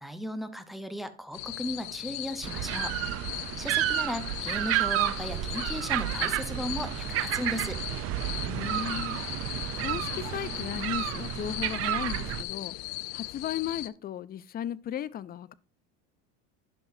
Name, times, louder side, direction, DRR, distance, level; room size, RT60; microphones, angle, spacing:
voice 1, 0.0-2.9 3.6-7.8, equal, ahead, 0.9 m, -36 dB
sound 1, 1.3-13.9, left 18 dB, 80° left, 0.6 m, -38 dB
sound 2, 2.4-12.4, right 13 dB, 45° right, 0.6 m, -31 dB
voice 2, 8.5-9.2 9.8-12.8 13.1-15.5, left 10 dB, 30° left, 0.5 m, -35 dB
10.5 x 5.7 x 2.7 m
supercardioid pair, 100°, 33 cm